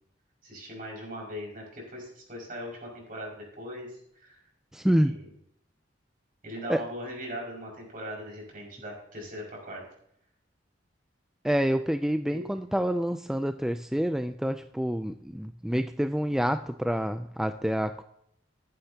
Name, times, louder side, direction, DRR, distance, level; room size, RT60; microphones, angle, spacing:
voice 1, 0.4-4.4 5.0-5.3 6.4-9.8 12.3-12.4, equal, 50° right, -2 dB, 5.6 m, -40 dB
voice 2, 4.7-5.1 6.7-6.8 11.4-18.0, equal, 5° right, 9 dB, 0.3 m, -27 dB
14.5 x 11.5 x 2.8 m, 0.72 s
head